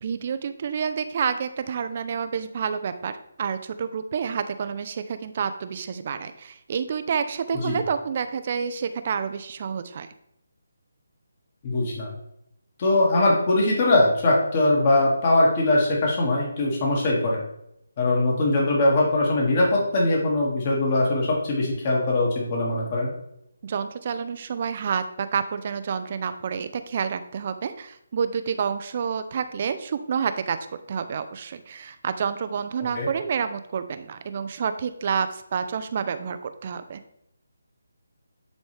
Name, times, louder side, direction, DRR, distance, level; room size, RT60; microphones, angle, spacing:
voice 1, 0.0-3.1 3.4-10.1 23.6-30.6 30.9-37.0, right 6 dB, 40° right, 10 dB, 0.6 m, -29 dB
voice 2, 11.6-12.1 12.8-17.4 18.0-23.1 32.9-33.1, left 2 dB, 35° left, -2 dB, 2.1 m, -21 dB
10.5 x 4.1 x 3.4 m, 0.79 s
figure-of-eight pair, 155°, 0 cm